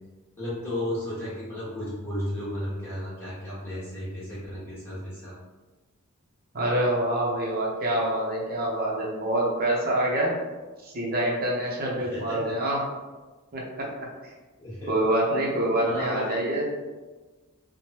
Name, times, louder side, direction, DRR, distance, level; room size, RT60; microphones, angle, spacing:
voice 1, 0.4-5.4 12.1-12.5 14.6-14.9 15.8-16.2, left 1 dB, 10° left, -10 dB, 1.3 m, -34 dB
voice 2, 6.5-10.4 10.8-12.9 13.5-13.9 14.2-14.3 14.9-16.7, right 1 dB, 45° right, -3 dB, 0.7 m, -26 dB
3.1 x 2.1 x 2.9 m, 1.3 s
head